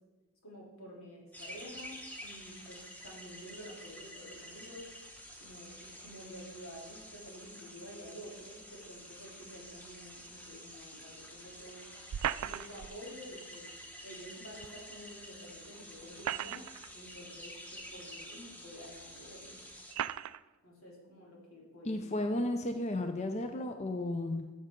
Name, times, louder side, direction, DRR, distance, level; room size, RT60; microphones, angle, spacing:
voice 1, 0.4-4.8 5.4-12.0 12.4-13.6 14.0-16.6 16.9-19.6 20.6-22.0, equal, 90° left, -3 dB, 3.1 m, -50 dB
sound 1, 1.3-19.9, equal, 10° left, 1.0 m, -49 dB
sound 2, 12.1-12.9 14.6-14.7 16.0-16.9 17.8-17.9 18.8-18.9 19.9-20.4, right 10 dB, 85° right, 0.3 m, -36 dB
voice 2, 21.8-24.5, left 1 dB, 30° left, 6 dB, 0.5 m, -33 dB
14.0 x 6.6 x 3.7 m, 1.2 s
head